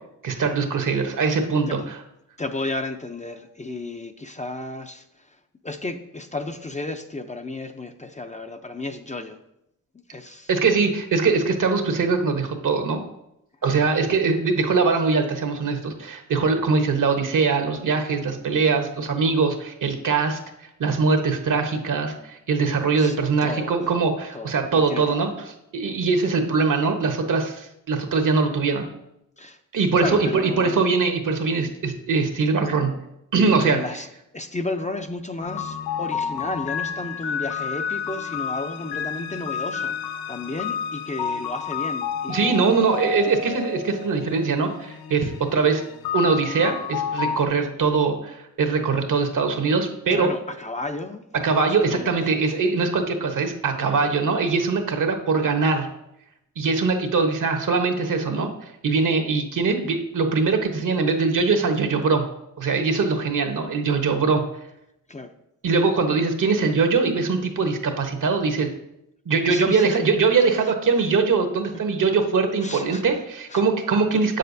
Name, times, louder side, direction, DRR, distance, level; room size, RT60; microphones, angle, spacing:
voice 1, 0.2-2.0 10.5-13.0 13.6-20.4 20.8-25.3 25.7-28.9 29.7-32.9 33.3-33.8 42.3-45.8 46.1-50.3 51.4-55.9 56.6-58.5 58.8-62.2 62.6-64.4 65.6-68.7 69.3-74.4, right 4 dB, 60° right, 6 dB, 1.1 m, -22 dB
voice 2, 2.4-5.0 5.6-9.4 10.1-10.5 14.1-14.2 23.0-23.2 23.4-23.7 24.3-25.3 29.4-29.6 30.0-30.8 33.6-34.1 34.3-42.9 50.1-51.2 51.9-52.2 65.1-65.3 69.5-70.1 72.6-73.0 73.5-73.7 74.1-74.2, left 2 dB, 20° left, 7 dB, 0.6 m, -33 dB
sound 1, 35.4-47.5, left 7 dB, 90° left, 0.6 m, -30 dB
7.7 x 6.5 x 2.7 m, 0.83 s
cardioid pair, 55°, 35 cm